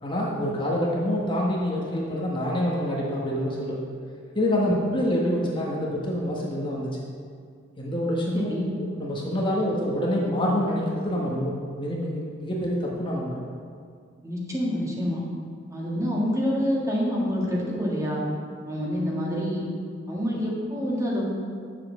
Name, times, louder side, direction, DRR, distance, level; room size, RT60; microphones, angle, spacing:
voice 1, 0.0-3.8 4.3-6.9 7.8-8.5 8.8-13.4, equal, 25° left, -4 dB, 1.2 m, -26 dB
voice 2, 8.3-8.7 14.2-15.2 15.7-18.2 18.7-19.7 20.1-21.3, equal, 15° right, -4 dB, 1.7 m, -27 dB
6.9 x 5.8 x 7.2 m, 2.2 s
head